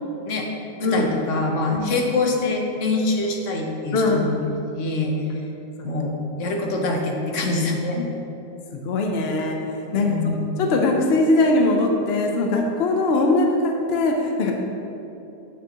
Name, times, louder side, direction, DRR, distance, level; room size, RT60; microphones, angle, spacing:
voice 1, 0.8-4.3 4.7-5.4 5.8-8.0 9.9-10.5 14.4-14.5, left 2 dB, 50° left, 1 dB, 1.0 m, -25 dB
voice 2, 3.9-4.4 5.8-5.9 8.0-8.1 8.7-9.6 9.9-14.5, left 2 dB, 80° left, 2 dB, 0.5 m, -21 dB
8.5 x 7.3 x 2.9 m, 3.0 s
omnidirectional pair, 2.0 m